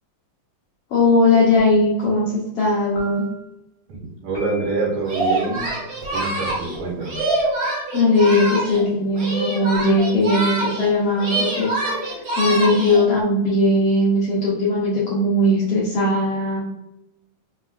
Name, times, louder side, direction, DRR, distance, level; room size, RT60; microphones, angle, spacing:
voice 1, 0.9-3.2 7.9-11.7 12.0-16.6, left 2 dB, 75° left, -6 dB, 1.4 m, -19 dB
sound 1, 1.6-2.1 3.0-3.5 4.3-4.9 5.6-6.2, left 2 dB, 55° left, 2.0 m, -39 dB
voice 2, 3.9-5.7 6.1-7.2, right 3 dB, 80° right, -4 dB, 2.7 m, -26 dB
Singing, 5.0-8.9 9.1-10.9 11.2-13.1, right 2 dB, 50° right, 2.0 m, -25 dB
5.3 x 2.3 x 2.3 m, 0.92 s
omnidirectional pair, 3.5 m